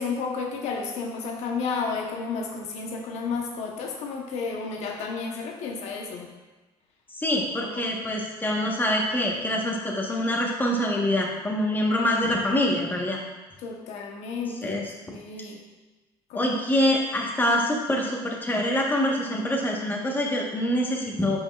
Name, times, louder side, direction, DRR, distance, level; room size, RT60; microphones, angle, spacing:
voice 1, 0.0-6.3 7.6-7.9 13.6-14.8 15.1-15.6 16.3-16.8, left 4 dB, 75° left, 1 dB, 1.1 m, -32 dB
voice 2, 7.1-13.2 14.6-14.8 16.3-21.4, left 1 dB, 15° left, -1 dB, 1.3 m, -25 dB
8.3 x 5.2 x 2.4 m, 1.2 s
supercardioid pair, 90°, 11 cm